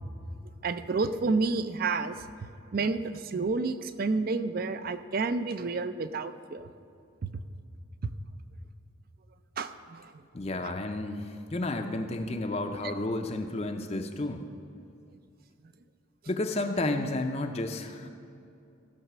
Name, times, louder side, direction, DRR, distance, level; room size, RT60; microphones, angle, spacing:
voice 1, 0.6-2.1 2.7-6.7 7.2-7.3 9.6-10.0 10.6-10.7, right 3 dB, 45° right, 12 dB, 0.4 m, -30 dB
voice 2, 10.3-14.4 16.3-18.1, left 2 dB, 30° left, 5 dB, 0.5 m, -31 dB
15.0 x 6.5 x 6.0 m, 2.5 s
head